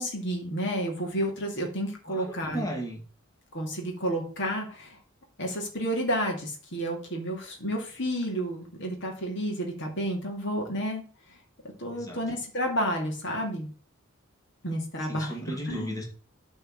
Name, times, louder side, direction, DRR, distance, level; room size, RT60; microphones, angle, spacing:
voice 1, 0.0-2.7 3.5-5.0 5.4-11.0 11.8-13.7 14.6-15.9, equal, 55° left, 1 dB, 2.6 m, -31 dB
voice 2, 2.1-3.0 11.9-12.2 15.1-16.0, equal, 15° left, 1 dB, 2.0 m, -35 dB
9.3 x 4.5 x 7.4 m, 0.38 s
head